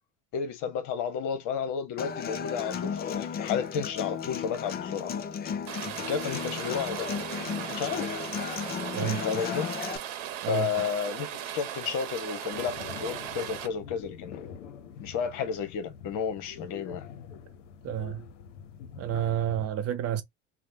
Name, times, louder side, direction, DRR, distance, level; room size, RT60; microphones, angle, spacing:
voice 1, 0.3-5.1 6.0-7.1 7.5-8.2 9.0-9.7 10.5-14.4 15.0-17.0, left 7 dB, 55° left, 0.9 m, -32 dB
Human voice / Acoustic guitar, 2.0-10.0, left 7 dB, 25° left, 0.4 m, -34 dB
Rain, 5.7-13.7, right 10 dB, 65° right, 0.9 m, -37 dB
sound 1, 12.5-19.7, left 7 dB, 85° left, 0.6 m, -45 dB
voice 2, 17.8-18.2 19.0-20.2, right 10 dB, 45° right, 0.6 m, -29 dB
3.1 x 2.0 x 2.7 m
hypercardioid pair, 75°, 36 cm